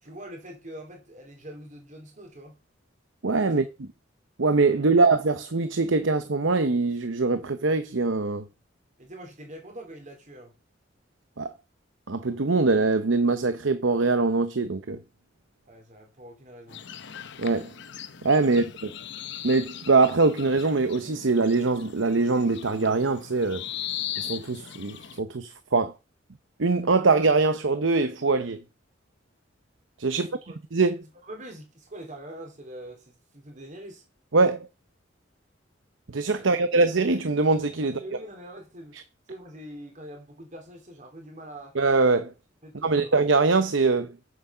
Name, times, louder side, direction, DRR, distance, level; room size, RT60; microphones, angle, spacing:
voice 1, 0.0-2.6 3.4-3.5 4.9-5.0 9.0-10.5 15.7-16.8 18.4-18.7 30.1-30.5 31.0-34.0 36.4-36.6 37.8-39.0 39.3-41.8 42.6-43.1, right 1 dB, 40° right, 3.1 m, -44 dB
voice 2, 3.2-3.6 4.4-8.4 11.4-11.5 12.1-15.0 17.4-17.7 18.2-18.9 19.4-23.6 24.2-25.9 26.6-28.6 30.0-30.3 30.7-31.0 34.3-34.7 36.1-38.0 41.7-42.3 42.8-44.1, right 3 dB, 75° right, 0.8 m, -23 dB
sound 1, 16.7-25.2, left 10 dB, 65° left, 0.9 m, -39 dB
8.1 x 7.7 x 5.6 m
head